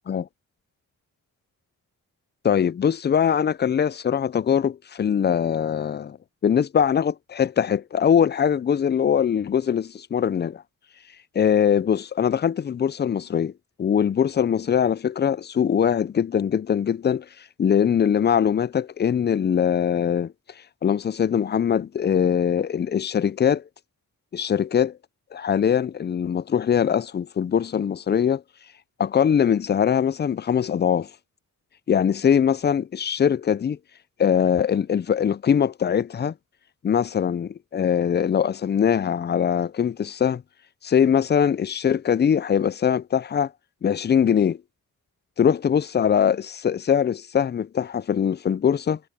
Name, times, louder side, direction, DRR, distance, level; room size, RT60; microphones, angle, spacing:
voice 1, 2.4-6.2 6.4-10.6 11.3-13.5 13.8-17.3 17.6-20.3 20.8-23.6 24.3-25.0 25.3-28.4 29.0-31.1 31.9-33.8 34.2-36.3 36.8-40.4 40.8-43.5 43.8-44.6 45.4-49.0, left 8 dB, 30° left, 0.4 m, -22 dB
cardioid pair, 75°, 35 cm